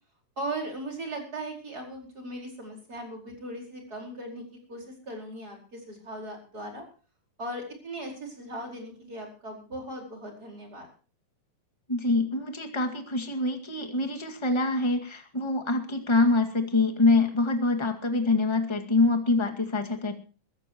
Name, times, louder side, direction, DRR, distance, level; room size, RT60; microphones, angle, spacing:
voice 1, 0.4-4.4 4.7-6.8 7.4-10.9, right 1 dB, 25° right, 1 dB, 5.0 m, -38 dB
voice 2, 11.9-20.1, left 3 dB, 15° left, 4 dB, 1.1 m, -25 dB
22.0 x 15.0 x 3.0 m, 0.36 s
omnidirectional pair, 4.0 m